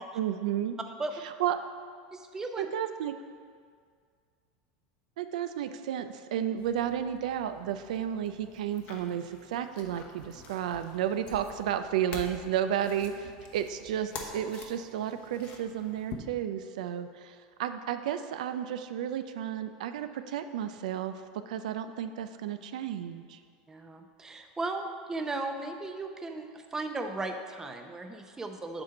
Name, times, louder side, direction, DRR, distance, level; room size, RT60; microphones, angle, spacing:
voice 1, 0.1-0.8 1.2-1.6 2.6-3.1 5.2-23.4, right 10 dB, 85° right, 9 dB, 0.4 m, -32 dB
voice 2, 2.1-2.7 23.7-28.8, right 2 dB, 15° right, 5 dB, 0.6 m, -36 dB
sound 1, 6.6-16.1, left 5 dB, 50° left, 1.0 m, -47 dB
7.6 x 4.4 x 5.9 m, 2.1 s
supercardioid pair, 130°, 4 cm